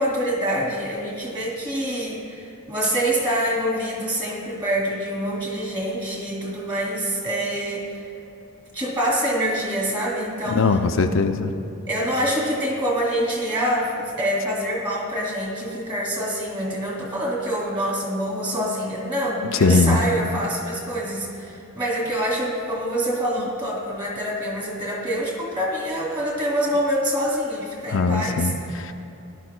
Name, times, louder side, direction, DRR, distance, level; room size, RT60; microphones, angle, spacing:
voice 1, 0.0-8.1 8.7-10.9 11.9-28.5, equal, 20° right, -2 dB, 2.4 m, -26 dB
voice 2, 10.5-11.5 19.5-20.0 27.9-28.9, left 4 dB, 60° left, 5 dB, 0.5 m, -20 dB
18.5 x 11.5 x 2.2 m, 2.9 s
head